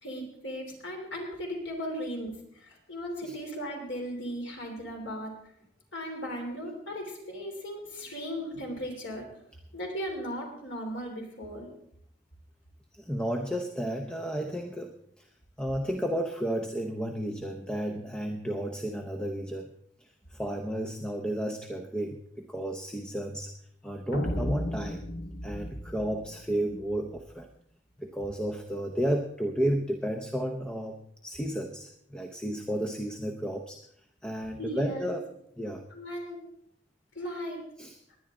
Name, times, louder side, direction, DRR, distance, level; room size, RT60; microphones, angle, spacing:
voice 1, 0.0-5.3 5.9-9.3 9.7-11.7 34.6-35.1 35.9-36.4 37.1-37.6, equal, 85° left, 1 dB, 3.4 m, -37 dB
voice 2, 12.9-15.3 15.6-19.7 20.0-23.5 23.8-25.0 25.4-27.5 28.0-31.0 31.2-33.8 34.2-35.3 35.6-35.8 37.8-38.0, equal, 5° left, 4 dB, 0.7 m, -32 dB
sound 1, 24.1-27.2, left 1 dB, 65° left, 1.4 m, -35 dB
19.5 x 10.5 x 3.8 m, 0.70 s
head